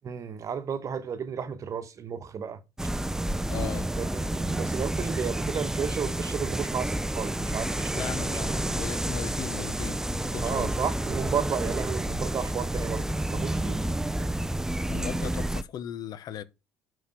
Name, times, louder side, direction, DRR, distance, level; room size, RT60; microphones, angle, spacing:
voice 1, 0.0-2.6 3.5-3.7 4.0-8.0 8.3-8.6 10.4-13.8, right 7 dB, 45° right, 1.2 m, -33 dB
sound 1, 2.8-15.6, right 1 dB, 5° right, 0.5 m, -30 dB
voice 2, 3.5-3.9 7.9-10.7 14.9-16.4, left 9 dB, 60° left, 0.8 m, -37 dB
5.9 x 5.0 x 5.9 m
supercardioid pair, 85°, 8 cm